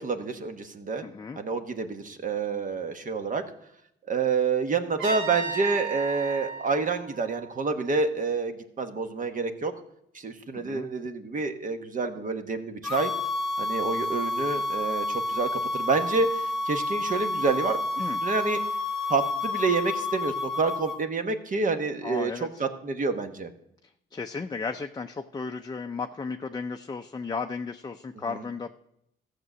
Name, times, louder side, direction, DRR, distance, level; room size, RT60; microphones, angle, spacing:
voice 1, 0.0-1.0 1.4-3.4 4.1-9.7 10.1-13.1 13.6-17.8 18.2-18.6 19.1-23.5 28.3-28.4, right 4 dB, 40° right, 7 dB, 1.2 m, -28 dB
voice 2, 1.0-1.4 10.5-10.9 18.0-18.2 22.0-22.6 24.1-28.8, left 4 dB, 20° left, 4 dB, 0.5 m, -34 dB
Trumpet, 5.0-7.9, right 4 dB, 85° right, 5.1 m, -35 dB
sound 1, 12.8-21.0, left 2 dB, ahead, 1.7 m, -30 dB
14.0 x 6.7 x 6.1 m, 0.78 s
cardioid pair, 90°, 20 cm